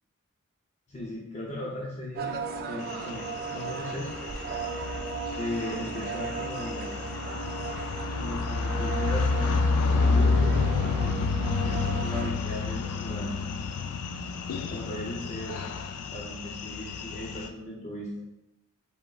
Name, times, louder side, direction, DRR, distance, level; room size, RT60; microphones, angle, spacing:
voice 1, 0.9-2.4 2.6-4.1 5.3-6.9 8.1-13.4 14.7-15.8 16.1-18.1, left 1 dB, 30° left, -4 dB, 0.6 m, -37 dB
sound 1, 2.2-12.3, right 4 dB, 45° right, 0.4 m, -36 dB
sound 2, 2.9-17.5, left 4 dB, 90° left, 0.3 m, -29 dB
5.0 x 3.6 x 2.3 m, 0.89 s
head